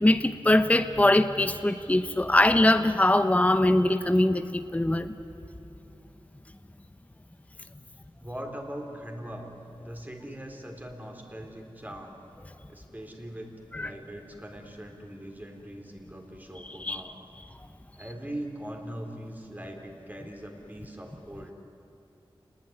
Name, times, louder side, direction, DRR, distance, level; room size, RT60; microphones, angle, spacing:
voice 1, 0.0-5.1 13.7-13.9 16.8-17.0, left 1 dB, 15° left, 9 dB, 1.0 m, -22 dB
voice 2, 8.2-12.2 12.7-17.1 17.9-21.5, right 1 dB, 20° right, 2 dB, 4.0 m, -41 dB
29.0 x 20.0 x 10.0 m, 2.8 s
wide cardioid pair, 85°, 9 cm